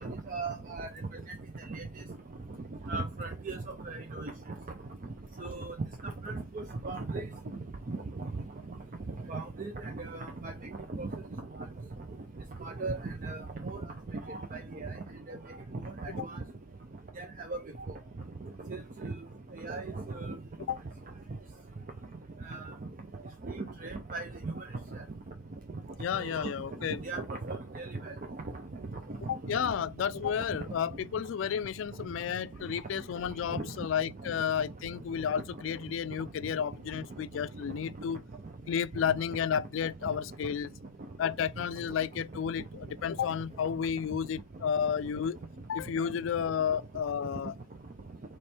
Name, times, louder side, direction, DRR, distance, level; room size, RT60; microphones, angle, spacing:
voice 1, 0.0-0.9 1.7-1.9 2.9-3.6 3.9-4.3 5.4-5.7 6.2-7.3 7.9-8.3 9.3-10.5 10.9-11.1 12.6-13.8 14.3-14.9 15.3-15.4 16.0-16.4 17.2-17.6 18.7-19.1 19.6-20.3 22.5-22.6 23.6-24.6 24.9-25.0 26.1-26.5 27.0-28.1 29.4-29.5 33.5-33.7, right 3 dB, 45° right, 0.5 m, -37 dB
voice 2, 26.0-27.0 29.3-38.2 38.7-40.7 41.2-45.4 45.7-47.6, left 8 dB, 90° left, 0.3 m, -32 dB
4.4 x 3.1 x 3.4 m
head